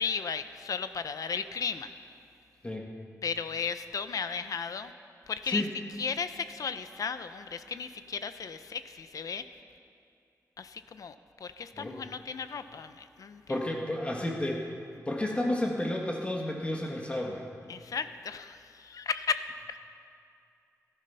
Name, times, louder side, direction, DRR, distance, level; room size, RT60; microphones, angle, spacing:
voice 1, 0.0-1.9 3.2-4.9 5.3-5.7 6.0-9.4 10.6-11.1 11.4-13.6 17.7-19.8, left 6 dB, 75° left, 11 dB, 0.7 m, -35 dB
voice 2, 13.5-14.7 15.1-17.4, left 1 dB, 20° left, 0 dB, 1.4 m, -31 dB
19.0 x 13.0 x 5.6 m, 2.5 s
wide cardioid pair, 150°, 6 cm